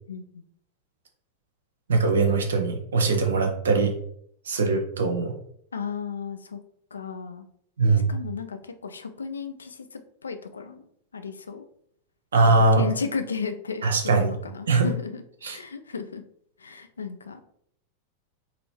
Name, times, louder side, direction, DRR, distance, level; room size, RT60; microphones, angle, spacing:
voice 1, 0.1-0.4 5.7-6.6 6.9-7.5 8.1-10.9 11.1-11.6 12.4-16.2 16.6-17.4, left 5 dB, 75° left, 8 dB, 0.4 m, -34 dB
voice 2, 1.9-3.9 4.4-5.3 7.8-8.1 12.3-12.8 13.8-14.3 14.7-14.9 15.4-15.6, right 3 dB, 65° right, 4 dB, 0.7 m, -21 dB
3.8 x 2.8 x 3.1 m, 0.68 s
figure-of-eight pair, 90°, 0 cm